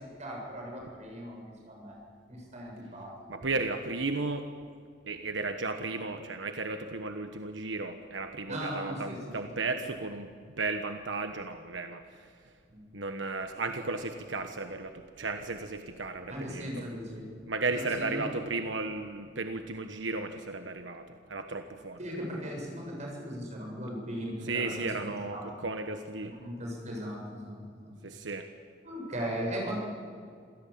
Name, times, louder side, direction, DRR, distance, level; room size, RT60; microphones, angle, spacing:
voice 1, 0.2-2.0 2.3-3.4 8.5-9.4 12.7-12.8 16.3-17.3 17.7-18.3 22.0-24.9 25.3-25.5 26.2-27.9 28.8-29.8, equal, 40° right, 0 dB, 7.7 m, -38 dB
voice 2, 3.3-4.5 5.1-10.3 10.6-12.5 12.9-16.9 17.5-22.0 24.4-26.3 28.0-28.5, right 3 dB, 85° right, 6 dB, 1.3 m, -34 dB
27.0 x 17.0 x 8.7 m, 2.2 s
head